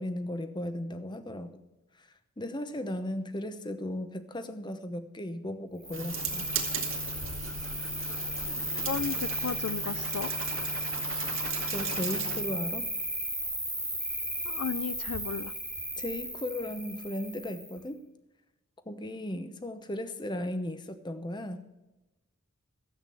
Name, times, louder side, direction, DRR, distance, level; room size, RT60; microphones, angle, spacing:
voice 1, 0.0-1.6 2.4-6.5 11.7-12.9 16.0-18.0 18.9-21.7, left 1 dB, 20° left, 10 dB, 0.8 m, -36 dB
Cricket, 5.8-17.8, right 1 dB, ahead, 1.7 m, -35 dB
sound 1, 5.9-12.4, right 4 dB, 65° right, 2.0 m, -37 dB
voice 2, 8.9-10.3 14.5-15.5, left 6 dB, 80° left, 16 dB, 0.4 m, -34 dB
13.5 x 8.1 x 6.9 m, 1.0 s
head